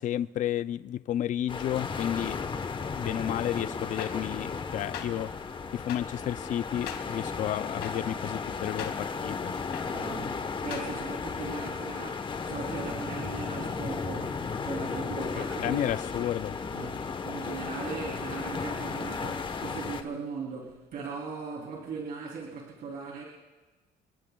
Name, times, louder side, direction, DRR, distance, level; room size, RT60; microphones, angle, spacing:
voice 1, 0.0-2.4 3.0-5.3 5.7-9.5 15.4-16.6, left 11 dB, 50° left, 0.4 m, -32 dB
sound 1, 1.5-20.0, left 5 dB, 30° left, 1.1 m, -35 dB
sound 2, 4.0-4.1 4.9-5.1 5.9-6.0 6.9-7.0 7.8-7.9 8.8-8.9 9.7-9.8 10.7-10.8, left 10 dB, 80° left, 2.1 m, -37 dB
voice 2, 9.9-16.0 16.7-23.2, right 5 dB, 65° right, 3.3 m, -39 dB
29.0 x 20.5 x 2.3 m
cardioid pair, 110°, 17 cm